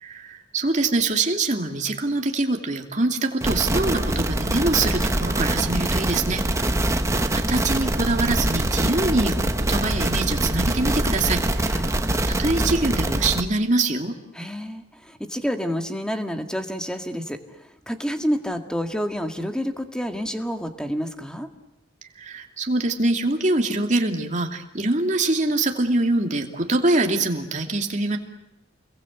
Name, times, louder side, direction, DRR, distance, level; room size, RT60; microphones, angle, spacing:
voice 1, 0.0-6.8 7.3-11.7 12.3-14.2 22.2-28.2, right 2 dB, 40° right, 3 dB, 2.6 m, -24 dB
sound 1, 3.4-13.4, right 1 dB, 15° right, 1.3 m, -24 dB
voice 2, 6.7-7.3 11.6-11.9 14.3-21.5, equal, 5° left, 6 dB, 1.8 m, -29 dB
29.5 x 22.0 x 8.2 m, 0.86 s
head